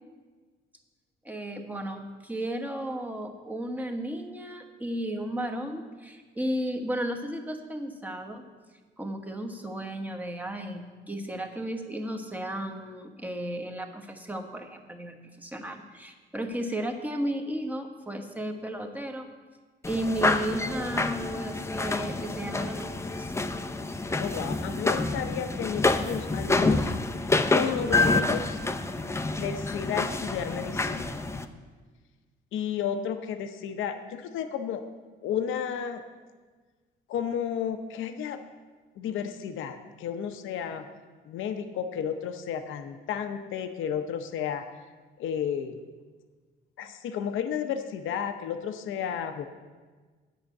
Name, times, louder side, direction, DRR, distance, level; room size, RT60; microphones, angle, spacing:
voice 1, 1.2-8.4 9.0-19.3 19.9-23.3, right 1 dB, 10° right, 4 dB, 1.2 m, -34 dB
sound 1, 19.8-31.4, left 3 dB, 15° left, 0.6 m, -28 dB
voice 2, 24.2-26.9 27.5-28.6 29.4-31.2 32.5-34.8 35.2-36.0 37.1-38.4 39.0-40.9 41.3-44.7 45.2-45.8 46.8-49.5, left 8 dB, 85° left, 7 dB, 0.7 m, -32 dB
9.0 x 5.7 x 8.3 m, 1.4 s
cardioid pair, 90°, 20 cm